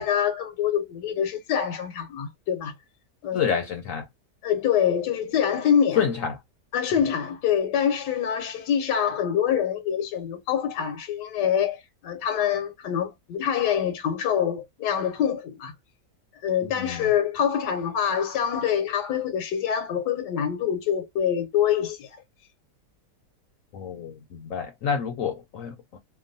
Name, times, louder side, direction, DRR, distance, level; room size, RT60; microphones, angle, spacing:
voice 1, 0.0-2.7 3.2-3.5 4.4-6.0 6.7-15.7 16.4-22.1, left 8 dB, 85° left, 1.2 m, -25 dB
voice 2, 3.3-4.1 6.0-6.4 6.9-7.0 16.6-17.1 23.7-26.0, left 7 dB, 65° left, 0.9 m, -28 dB
2.9 x 2.2 x 2.5 m
omnidirectional pair, 1.8 m